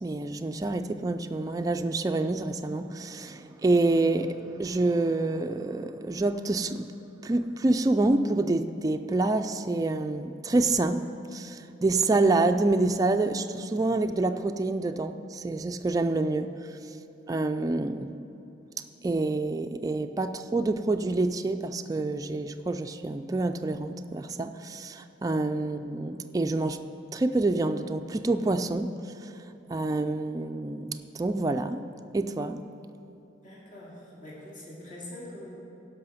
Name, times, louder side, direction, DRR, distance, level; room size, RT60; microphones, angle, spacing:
voice 1, 0.0-6.9 7.2-11.1 11.3-16.5 17.3-18.1 19.0-26.8 27.1-28.9 29.7-31.8 32.1-32.6, right 2 dB, 20° right, 7 dB, 0.3 m, -27 dB
voice 2, 33.4-35.5, left 1 dB, 45° left, -6 dB, 2.3 m, -44 dB
16.5 x 5.7 x 5.5 m, 2.8 s
head